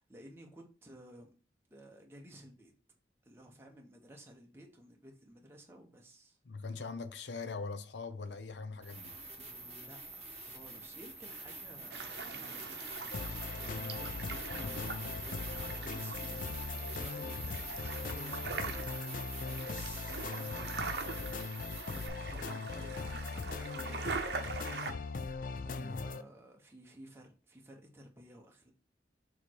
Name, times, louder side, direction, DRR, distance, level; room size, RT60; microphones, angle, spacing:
voice 1, 0.0-1.3 1.7-2.7 3.2-6.4 9.4-13.1 13.5-18.8 19.4-25.0 25.6-28.7, right 1 dB, 15° right, 1.1 m, -54 dB
voice 2, 6.4-9.1 25.8-26.1, left 4 dB, 85° left, 0.7 m, -41 dB
sound 1, 8.8-22.1, right 2 dB, 35° right, 1.2 m, -45 dB
sound 2, 11.9-24.9, right 4 dB, 70° right, 0.8 m, -43 dB
sound 3, 13.1-26.2, left 4 dB, 50° left, 0.3 m, -40 dB
6.8 x 3.2 x 4.6 m
head